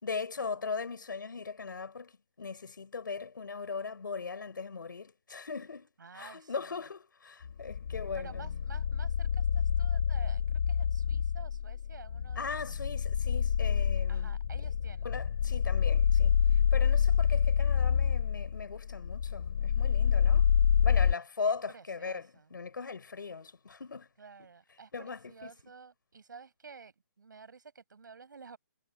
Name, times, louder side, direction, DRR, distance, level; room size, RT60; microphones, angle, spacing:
voice 1, 0.0-8.5 11.1-11.2 12.4-14.4 15.0-16.4 16.7-20.5 20.8-24.1 24.4-24.5 24.9-25.5, left 5 dB, 90° left, 5.4 m, -39 dB
voice 2, 6.0-6.8 8.1-12.6 14.1-15.1 16.9-17.0 20.3-20.4 21.7-22.5 24.2-28.6, right 5 dB, 75° right, 7.4 m, -52 dB
sound 1, 7.4-21.1, left 7 dB, 40° left, 0.6 m, -27 dB
hypercardioid pair, 175°, 10 cm